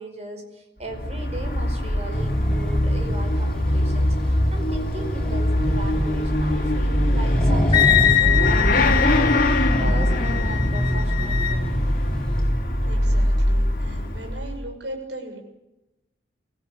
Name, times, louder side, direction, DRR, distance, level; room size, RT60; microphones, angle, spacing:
voice 1, 0.0-7.9 8.2-11.7, right 1 dB, 35° right, 4 dB, 5.0 m, -37 dB
Motorcycle / Accelerating revving vroom, 0.8-14.6, left 1 dB, 45° left, 3.0 m, -22 dB
Accelerating revving vroom, 2.1-12.5, equal, 5° left, 4.7 m, -28 dB
Wind instrument woodwind instrument, 7.7-11.6, left 12 dB, 25° left, 4.5 m, -23 dB
voice 2, 12.8-15.4, right 1 dB, 75° right, 2 dB, 7.0 m, -37 dB
24.0 x 16.0 x 8.6 m, 0.94 s
head